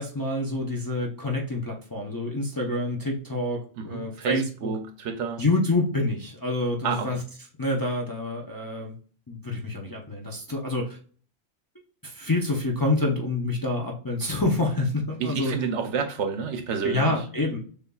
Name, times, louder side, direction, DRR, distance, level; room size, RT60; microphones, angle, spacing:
voice 1, 0.0-4.7 5.4-7.2 7.6-8.9 9.3-11.0 12.0-15.5 16.8-17.6, left 2 dB, 25° left, 0.5 m, -27 dB
voice 2, 3.8-5.4 6.8-7.2 15.2-17.1, right 6 dB, 75° right, 1.0 m, -29 dB
6.7 x 2.5 x 2.3 m
omnidirectional pair, 1.2 m